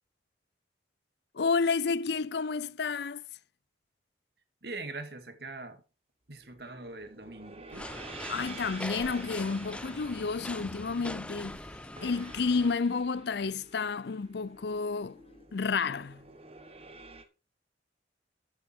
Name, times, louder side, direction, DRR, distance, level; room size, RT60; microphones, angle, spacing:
voice 1, 1.3-3.3 8.3-15.2 15.5-16.3, left 4 dB, 65° left, 0.5 m, -31 dB
voice 2, 4.6-5.8 6.3-7.9, right 3 dB, 60° right, 2.1 m, -42 dB
sound 1, 6.3-17.2, right 4 dB, 30° right, 1.5 m, -50 dB
sound 2, 7.7-12.8, left 1 dB, 5° left, 0.6 m, -42 dB
sound 3, 10.4-15.5, left 2 dB, 35° left, 1.4 m, -58 dB
13.5 x 7.5 x 4.5 m
head